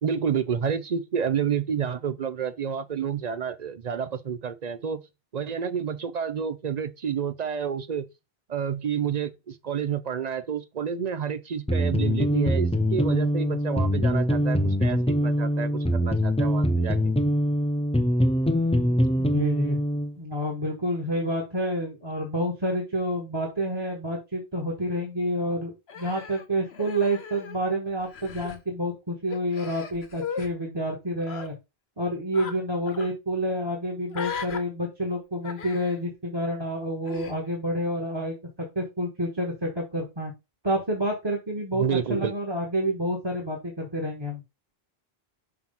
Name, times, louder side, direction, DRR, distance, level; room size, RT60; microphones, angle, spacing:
voice 1, 0.0-5.0 5.3-8.1 8.5-17.1 41.7-42.3, right 7 dB, 50° right, 0.6 m, -29 dB
sound 1, 11.7-20.1, equal, 10° left, 0.4 m, -23 dB
voice 2, 19.2-19.8 20.2-31.5 32.0-38.3 38.7-40.3 40.6-44.4, equal, 25° right, 1.4 m, -29 dB
Human voice, 25.9-27.7 28.0-28.6 29.3-30.5 31.2-31.5 32.3-32.6 32.9-33.1 34.1-34.6 35.4-36.0 37.0-37.3, left 6 dB, 85° left, 1.2 m, -37 dB
5.9 x 3.0 x 5.4 m
omnidirectional pair, 1.0 m